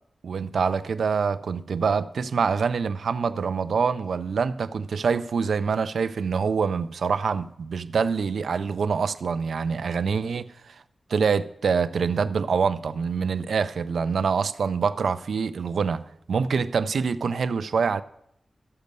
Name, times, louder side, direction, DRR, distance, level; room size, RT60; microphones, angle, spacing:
voice 1, 0.2-10.8 11.1-18.0, right 5 dB, 85° right, 0.5 m, -25 dB
13.5 x 6.8 x 5.3 m
wide cardioid pair, 110°, 0 cm